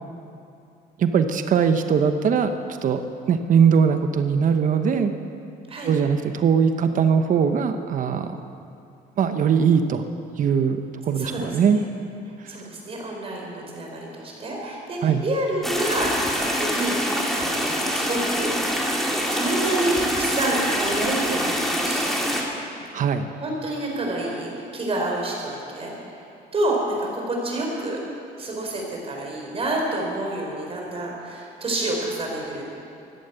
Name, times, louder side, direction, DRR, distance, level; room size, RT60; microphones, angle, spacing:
voice 1, 1.0-2.6 2.8-3.0 3.3-5.1 5.8-8.4 9.2-10.0 10.4-10.8 11.1-11.8 12.4-12.5 15.0-15.2 22.9-23.3, right 6 dB, 50° right, 8 dB, 1.0 m, -20 dB
voice 2, 11.2-11.8 12.5-18.6 19.3-22.1 23.4-25.9 26.5-28.0 28.4-32.6, right 1 dB, 35° right, -1 dB, 4.6 m, -28 dB
sound 1, 15.6-22.4, equal, ahead, 2.6 m, -25 dB
14.5 x 11.5 x 8.1 m, 2.6 s
cardioid pair, 110°, 17 cm